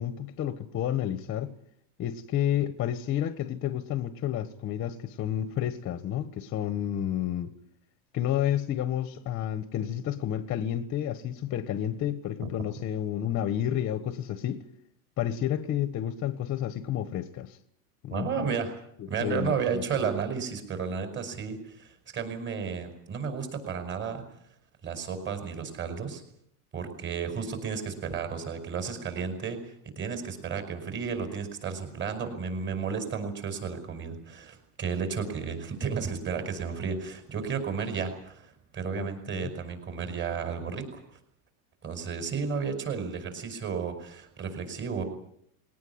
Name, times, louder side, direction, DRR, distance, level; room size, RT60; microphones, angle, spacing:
voice 1, 0.0-1.5 2.0-7.5 8.1-14.6 15.2-17.6 18.0-18.4 19.0-19.8 39.0-39.5, left 11 dB, 25° left, 1.3 m, -30 dB
voice 2, 18.1-18.8 19.1-24.2 24.8-26.2 26.7-41.0 41.8-45.0, right 6 dB, 25° right, 5.4 m, -33 dB
21.0 x 19.0 x 9.6 m
supercardioid pair, 150°, 46 cm